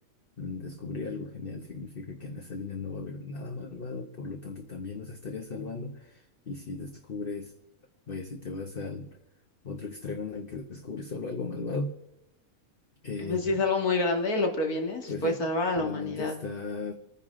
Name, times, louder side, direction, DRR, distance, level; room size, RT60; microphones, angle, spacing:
voice 1, 0.4-7.5 8.1-9.1 9.6-11.9 13.0-13.6 15.1-15.4 15.8-16.9, left 4 dB, 40° left, 4 dB, 1.2 m, -37 dB
voice 2, 13.2-16.4, left 2 dB, 90° left, 2 dB, 2.7 m, -27 dB
29.0 x 10.0 x 3.8 m, 0.87 s
omnidirectional pair, 1.5 m